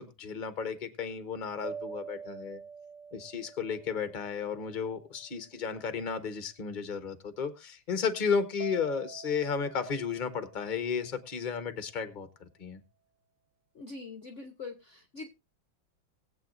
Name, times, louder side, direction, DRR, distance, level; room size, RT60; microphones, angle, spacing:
voice 1, 0.0-2.6 3.1-12.8, left 6 dB, 30° left, 10 dB, 1.2 m, -33 dB
sound 1, 1.6-5.2 8.6-11.6, right 6 dB, 50° right, 1.0 m, -47 dB
voice 2, 13.7-15.3, left 3 dB, 45° left, 7 dB, 1.1 m, -43 dB
21.0 x 8.2 x 2.6 m, 0.25 s
omnidirectional pair, 2.1 m